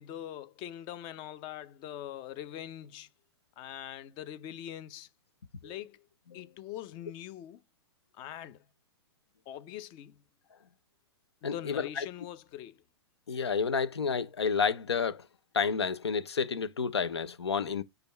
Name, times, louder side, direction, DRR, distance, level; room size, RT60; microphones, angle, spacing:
voice 1, 0.0-3.1 3.6-5.1 5.6-6.1 6.3-7.6 8.2-8.6 9.5-10.2 11.4-12.8, left 11 dB, 35° left, 0.5 m, -43 dB
voice 2, 11.4-12.1 13.3-15.3 15.5-17.8, left 5 dB, 90° left, 0.6 m, -30 dB
5.1 x 2.4 x 4.2 m
hypercardioid pair, 115°, 13 cm